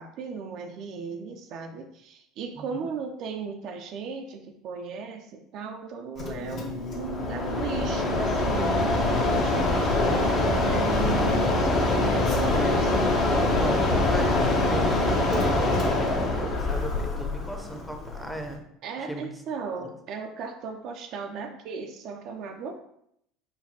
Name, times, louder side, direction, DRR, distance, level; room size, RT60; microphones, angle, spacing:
voice 1, 0.0-12.9 18.8-22.9, right 5 dB, 55° right, 4 dB, 0.4 m, -36 dB
Mechanisms, 6.2-18.5, left 2 dB, 45° left, 0.8 m, -24 dB
voice 2, 13.6-18.6 19.1-19.3, right 1 dB, ahead, 3 dB, 0.6 m, -36 dB
5.1 x 2.3 x 2.7 m, 0.74 s
figure-of-eight pair, 65°, 0 cm